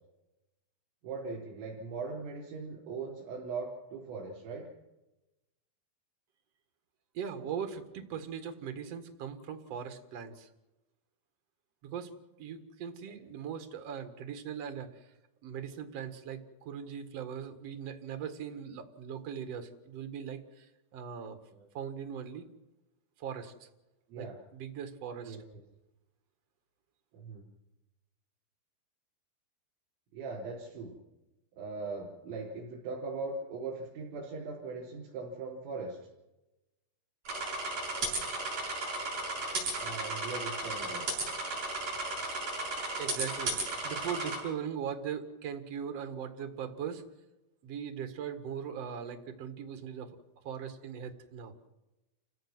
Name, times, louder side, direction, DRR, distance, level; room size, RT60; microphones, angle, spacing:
voice 1, 1.0-4.7 13.1-13.2 21.5-21.7 24.1-24.4 25.2-25.4 27.1-27.5 30.1-30.9 31.6-36.0 39.8-41.1, right 4 dB, 85° right, -5 dB, 7.0 m, -40 dB
voice 2, 7.1-10.5 11.8-12.1 12.4-15.1 15.4-20.7 20.9-21.4 21.7-22.5 23.2-23.7 24.2-24.3 24.5-25.4 43.0-43.6 43.8-47.0 47.6-50.1 50.4-51.5, right 7 dB, 60° right, 8 dB, 1.7 m, -39 dB
sound 1, 37.3-44.4, right 2 dB, 40° right, 8.4 m, -35 dB
29.0 x 17.0 x 6.2 m, 0.99 s
omnidirectional pair, 5.7 m